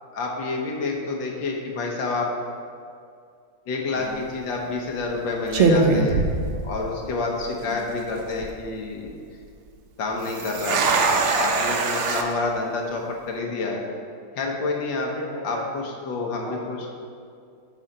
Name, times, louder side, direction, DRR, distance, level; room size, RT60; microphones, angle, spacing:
voice 1, 0.1-2.3 3.7-6.3 6.6-9.1 10.0-10.9 11.3-13.8 14.4-15.1 15.4-16.8, left 3 dB, 75° left, 0 dB, 1.8 m, -28 dB
sound 1, 4.0-4.3 5.0-5.2 5.5-7.1 7.4-7.5 8.1-8.5 10.2-12.2, right 3 dB, 70° right, 0.7 m, -22 dB
voice 2, 15.1-15.7 16.4-16.9, equal, 30° right, -4 dB, 1.6 m, -36 dB
8.7 x 5.7 x 5.3 m, 2.3 s
omnidirectional pair, 2.1 m